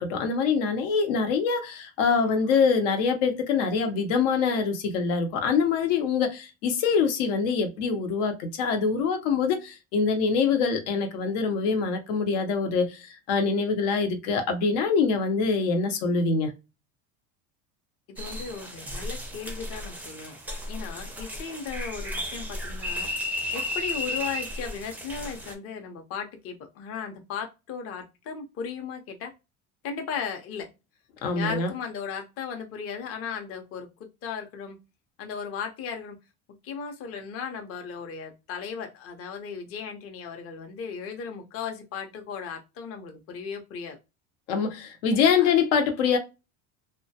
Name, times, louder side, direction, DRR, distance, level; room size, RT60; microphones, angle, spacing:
voice 1, 0.0-16.5 31.2-31.7 44.5-46.2, left 5 dB, 85° left, 0.8 m, -24 dB
voice 2, 18.2-20.4 20.7-23.1 23.5-29.3 29.8-30.7 31.4-33.9 34.2-34.8 35.2-36.2 36.6-44.0 45.4-45.5, left 6 dB, 40° left, 0.6 m, -36 dB
sound 1, 18.2-25.5, left 1 dB, 5° right, 0.4 m, -34 dB
2.2 x 2.1 x 2.7 m
supercardioid pair, 125°, 36 cm